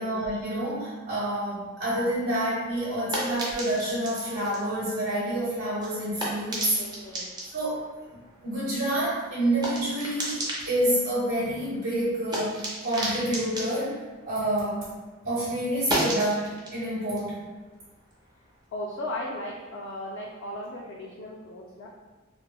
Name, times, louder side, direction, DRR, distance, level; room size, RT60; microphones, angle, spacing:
voice 1, 0.0-6.8 7.5-7.9 8.4-13.9 14.2-14.9 15.2-17.4, right 1 dB, 85° right, -10 dB, 0.8 m, -28 dB
kicking a stone, 2.3-15.1 15.3-18.6, right 1 dB, 20° right, 0.5 m, -36 dB
voice 2, 6.6-7.3 14.9-15.0 18.7-21.9, left 1 dB, 55° left, -3 dB, 0.3 m, -36 dB
3.0 x 2.1 x 2.3 m, 1.3 s
head